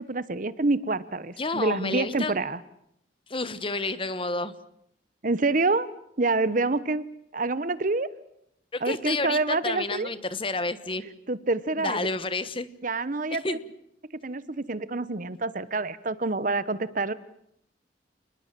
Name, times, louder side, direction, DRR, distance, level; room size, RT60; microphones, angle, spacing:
voice 1, 0.1-2.6 5.2-5.9 6.2-7.0 7.3-8.1 8.8-10.1 11.3-12.1 12.8-13.6 14.2-17.1, right 3 dB, 45° right, 16 dB, 1.0 m, -27 dB
voice 2, 1.4-2.3 3.3-4.5 8.7-11.0 11.8-12.7 13.4-13.6 15.3-15.4, left 3 dB, 30° left, 13 dB, 1.3 m, -30 dB
28.5 x 20.5 x 7.6 m, 0.75 s
head